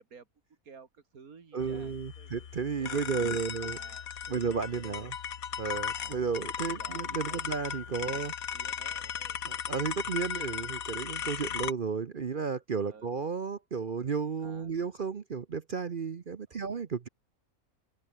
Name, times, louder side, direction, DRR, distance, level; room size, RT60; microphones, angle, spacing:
voice 1, 0.0-2.3 2.8-4.4 4.7-5.1 6.7-7.4 8.0-9.4 12.9-13.1 14.4-14.7 16.5-16.7, right 5 dB, 75° right, 2.5 m, -55 dB
voice 2, 1.5-3.8 4.3-5.1 5.6-8.3 9.4-17.1, right 5 dB, 45° right, 0.9 m, -33 dB
sound 1, 1.6-11.7, left 8 dB, 75° left, 1.7 m, -37 dB
omnidirectional pair, 1.5 m